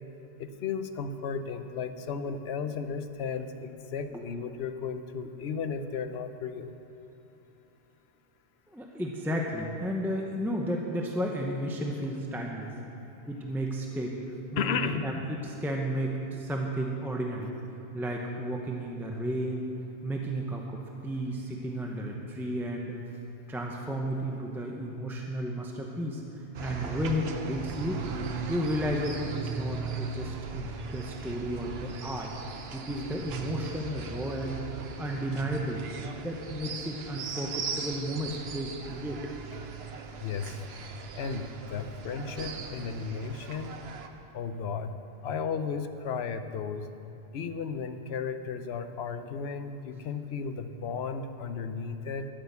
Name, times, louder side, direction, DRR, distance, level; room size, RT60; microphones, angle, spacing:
voice 1, 0.4-6.7 14.6-15.1 40.2-40.5 41.2-43.7 44.3-44.9 45.2-46.9 47.3-52.3, left 5 dB, 75° left, 9 dB, 0.9 m, -34 dB
voice 2, 8.7-12.7 13.3-14.2 14.5-17.5 17.9-19.6 20.0-23.0 23.5-26.2 26.6-28.0 28.5-35.8 36.2-39.3, equal, ahead, 0 dB, 0.8 m, -33 dB
sound 1, 26.5-44.1, right 5 dB, 70° right, 1.0 m, -38 dB
11.5 x 8.8 x 6.8 m, 3.0 s
omnidirectional pair, 1.1 m